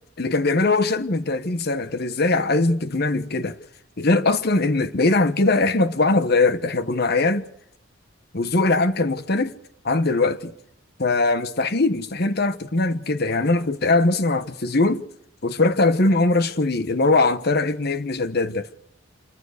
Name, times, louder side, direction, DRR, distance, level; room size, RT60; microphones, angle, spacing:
voice 1, 0.2-3.6 4.0-7.4 8.3-9.5 9.8-10.5 11.0-15.0 15.4-18.7, left 3 dB, 50° left, 1.1 m, -21 dB
27.0 x 14.5 x 6.7 m
head